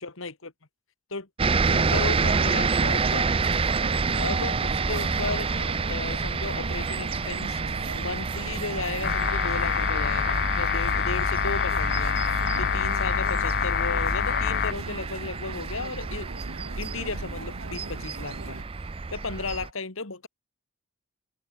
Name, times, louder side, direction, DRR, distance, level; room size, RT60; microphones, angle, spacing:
voice 1, 0.0-0.5 1.1-1.3 1.7-3.3 4.2-7.6 7.9-12.2 12.6-16.3 16.8-18.6 19.1-20.3, left 3 dB, 65° left, 1.9 m, -35 dB
sound 1, 1.4-19.7, right 4 dB, 25° right, 0.5 m, -28 dB
sound 2, 1.6-18.6, right 2 dB, 65° right, 2.3 m, -42 dB
sound 3, 9.0-14.7, left 7 dB, 50° left, 0.7 m, -26 dB
head